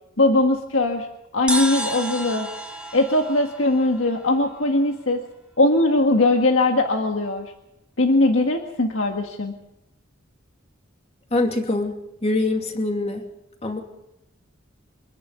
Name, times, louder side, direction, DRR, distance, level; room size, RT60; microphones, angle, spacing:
voice 1, 0.2-1.1 1.3-2.5 2.9-5.2 5.6-7.5 8.0-9.5, left 2 dB, 70° left, 3 dB, 1.7 m, -20 dB
sound 1, 1.5-5.0, right 1 dB, 5° right, 1.7 m, -31 dB
voice 2, 11.3-13.2 13.6-13.8, left 2 dB, 30° left, 4 dB, 2.6 m, -24 dB
25.0 x 11.0 x 9.6 m, 0.88 s
head